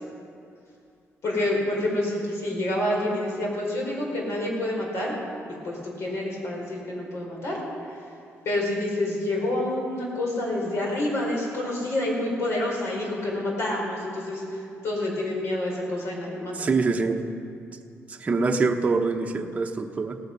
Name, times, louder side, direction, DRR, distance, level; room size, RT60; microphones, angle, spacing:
voice 1, 1.2-5.2 5.6-7.6 7.9-8.0 8.4-16.6, left 1 dB, 65° left, -2 dB, 4.7 m, -28 dB
voice 2, 16.6-17.2 18.1-20.2, right 4 dB, 25° right, 3 dB, 0.9 m, -24 dB
17.5 x 14.5 x 5.3 m, 2.5 s
cardioid pair, 140°, 5 cm